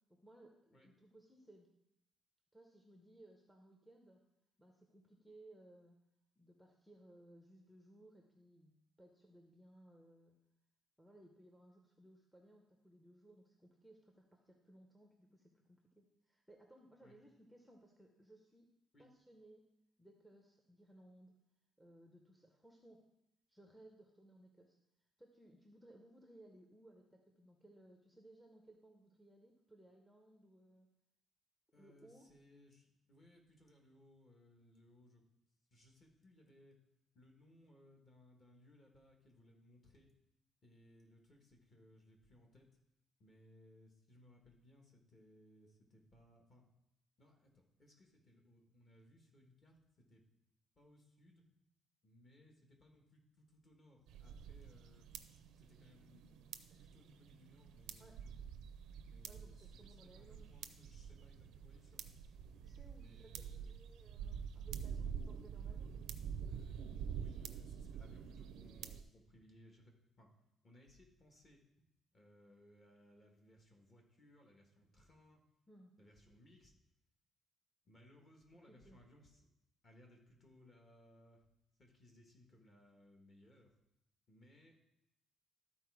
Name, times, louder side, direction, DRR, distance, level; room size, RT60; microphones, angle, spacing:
voice 1, 0.1-1.7 2.5-4.2 4.6-6.0 6.4-10.4 11.0-18.7 19.0-19.6 20.0-21.3 21.8-23.0 23.5-24.8 25.2-30.9 31.8-32.3 58.0-58.1 59.3-60.5 62.6-66.3 75.7-75.9 78.7-79.0, right 1 dB, ahead, 1 dB, 0.7 m, -62 dB
voice 2, 31.7-35.2 35.7-36.8 37.1-40.1 40.6-42.7 43.2-46.6 47.2-50.2 50.8-51.4 52.0-55.1 55.6-56.4 56.8-58.2 59.0-62.1 63.0-63.7 66.5-70.3 70.6-71.9 72.1-75.4 76.0-76.7 77.8-79.5 79.8-81.5 81.8-83.7 84.3-84.8, left 1 dB, 30° left, 2 dB, 1.4 m, -65 dB
sound 1, 54.1-69.0, right 7 dB, 80° right, 0.5 m, -47 dB
12.5 x 4.2 x 4.7 m, 0.83 s
cardioid pair, 165°, 0 cm